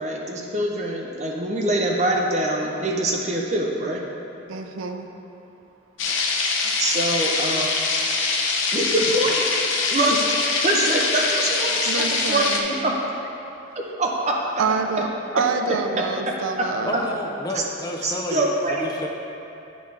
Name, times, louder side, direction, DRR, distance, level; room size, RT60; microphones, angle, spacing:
voice 1, 0.0-4.0 6.8-7.7 8.7-9.4 9.9-10.3 10.6-12.9 14.0-14.3 16.0-16.1 17.5-17.6 18.0-18.9, right 1 dB, 35° right, -1 dB, 0.7 m, -24 dB
voice 2, 4.5-5.1 11.9-12.7 14.6-15.1 15.3-17.2, right 5 dB, 90° right, 6 dB, 0.4 m, -26 dB
sound 1, 6.0-12.6, left 4 dB, 75° left, 0.7 m, -23 dB
voice 3, 16.8-19.1, left 1 dB, 20° left, 0 dB, 0.5 m, -31 dB
9.0 x 5.2 x 3.3 m, 2.9 s
head